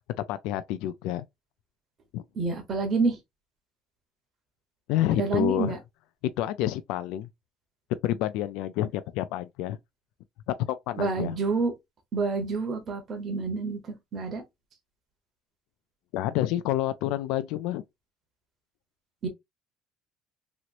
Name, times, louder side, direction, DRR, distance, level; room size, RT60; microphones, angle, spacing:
voice 1, 0.3-1.3 2.1-2.2 4.9-5.8 6.4-7.3 8.0-9.8 10.5-11.4 16.1-17.8, left 13 dB, 75° left, 0.3 m, -28 dB
voice 2, 2.4-3.2 5.2-5.8 11.0-11.7 12.1-14.4 19.2-19.3, right 4 dB, 35° right, 0.9 m, -28 dB
3.0 x 2.9 x 2.5 m
cardioid pair, 155°, 0 cm